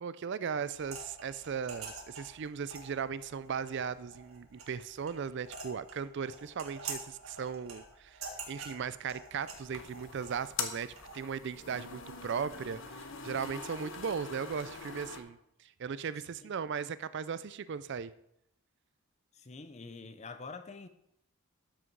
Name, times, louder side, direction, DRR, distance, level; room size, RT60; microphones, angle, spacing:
voice 1, 0.0-8.2 8.5-18.1, right 6 dB, 50° right, 0.4 m, -37 dB
sound 1, 0.7-11.2, right 4 dB, 70° right, 1.8 m, -47 dB
sound 2, 9.4-15.2, left 5 dB, 60° left, 1.1 m, -43 dB
voice 2, 19.3-20.9, left 4 dB, 30° left, 0.6 m, -46 dB
12.5 x 6.3 x 4.6 m
head